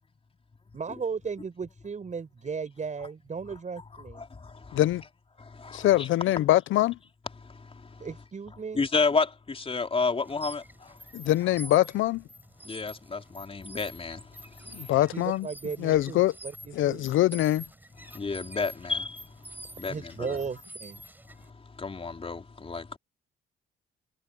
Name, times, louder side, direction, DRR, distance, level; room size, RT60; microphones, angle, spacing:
voice 1, 0.7-4.2 8.0-8.9 15.1-17.1 19.8-21.0, right 5 dB, 40° right, 6.5 m, -36 dB
voice 2, 4.2-4.8 5.6-6.1 8.7-10.9 12.6-14.2 18.1-19.2 19.8-20.2 21.8-23.0, left 4 dB, 30° left, 4.1 m, -30 dB
voice 3, 5.7-7.0 11.1-12.2 14.7-15.5 15.8-16.3 16.7-17.6, left 14 dB, 80° left, 0.8 m, -23 dB
sound 1, 10.2-21.5, right 1 dB, 10° right, 5.4 m, -48 dB
cardioid pair, 90°, 20 cm